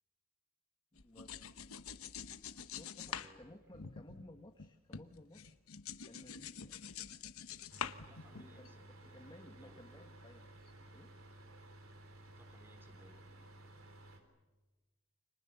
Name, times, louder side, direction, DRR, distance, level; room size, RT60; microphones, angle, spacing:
voice 1, 0.9-1.5 2.6-5.6 6.0-6.8 8.6-11.1, left 1 dB, 20° left, 4 dB, 1.3 m, -58 dB
sound 1, 1.0-4.7 4.9-8.7, left 7 dB, 85° left, 1.1 m, -46 dB
voice 2, 3.1-3.7 8.0-10.1 12.4-13.5, equal, 10° right, 6 dB, 4.0 m, -64 dB
sound 2, 7.7-14.2, right 1 dB, 70° right, 3.8 m, -56 dB
30.0 x 26.0 x 7.0 m, 1.2 s
head